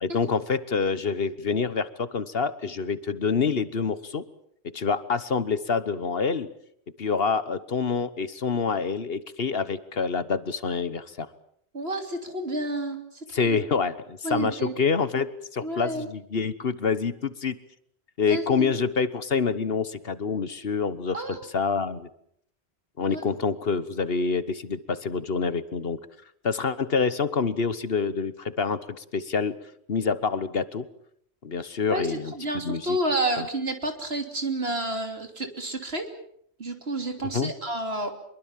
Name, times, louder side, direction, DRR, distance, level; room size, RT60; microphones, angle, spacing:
voice 1, 0.0-4.2 4.7-6.5 7.0-11.3 13.3-17.5 18.2-22.1 23.0-26.0 26.4-29.5 29.9-30.9 31.4-32.3 32.6-33.0 33.4-33.5 37.3-37.5, left 5 dB, 60° left, 14 dB, 1.4 m, -27 dB
voice 2, 11.7-13.0 13.3-13.6 14.2-14.8 15.6-16.1 18.3-18.7 21.1-21.4 23.1-23.2 31.9-36.1 36.6-38.1, right 1 dB, 65° right, 6 dB, 3.4 m, -30 dB
24.5 x 23.0 x 7.5 m, 0.69 s
omnidirectional pair, 1.1 m